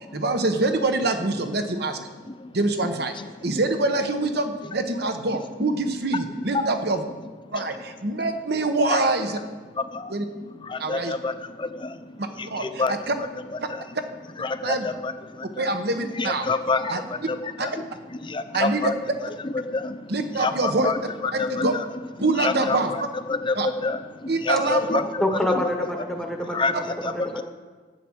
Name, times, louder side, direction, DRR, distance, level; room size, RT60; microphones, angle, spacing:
voice 1, 0.1-2.0 2.5-3.1 3.4-7.1 7.5-9.4 10.1-10.2 10.8-11.1 12.2-13.2 14.6-14.9 15.6-16.5 16.9-17.0 17.6-17.7 18.5-18.9 20.1-21.7 22.2-22.9 23.5-23.7 24.3-25.0, right 2 dB, 60° right, 7 dB, 1.1 m, -25 dB
voice 2, 9.8-10.1 10.7-12.0 12.4-12.9 13.7-13.8 14.4-15.7 16.2-17.4 17.6-17.7 18.2-18.9 19.7-20.1 20.4-20.9 21.4-21.7 22.4-22.8 23.3-24.0 24.4-25.2 26.5-26.7 27.0-27.4, left 3 dB, 25° left, 9 dB, 0.6 m, -27 dB
voice 3, 25.2-27.4, left 1 dB, 5° left, 2 dB, 1.0 m, -27 dB
12.0 x 8.8 x 6.3 m, 1.4 s
head